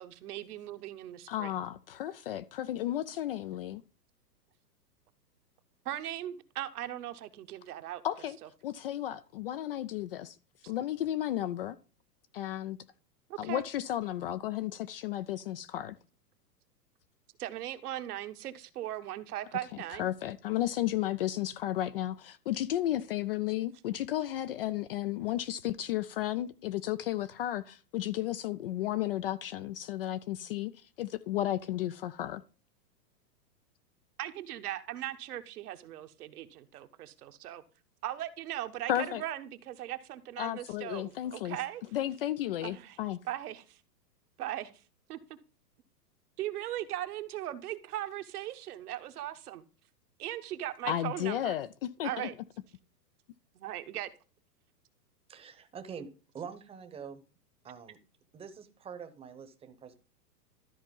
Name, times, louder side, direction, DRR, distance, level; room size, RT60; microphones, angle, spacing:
voice 1, 0.0-1.5 5.8-8.0 13.3-13.6 17.4-20.1 34.2-37.6 38.0-41.8 42.6-43.0 43.2-43.8 44.4-44.7 45.1-45.2 46.4-49.6 50.2-51.6 52.0-52.3 53.5-54.1, right 13 dB, 65° right, 1.3 m, -38 dB
voice 2, 1.3-3.8 8.0-8.4 8.6-10.4 10.7-11.8 12.3-12.8 13.4-16.0 20.0-30.7 31.0-32.4 38.9-39.2 40.4-41.6 41.9-43.2 50.8-52.3, left 12 dB, 40° left, 0.4 m, -33 dB
voice 3, 55.3-56.1 56.3-57.2 57.6-58.0 58.3-59.9, right 6 dB, 10° right, 0.9 m, -45 dB
13.0 x 4.4 x 5.3 m
hypercardioid pair, 130°, 49 cm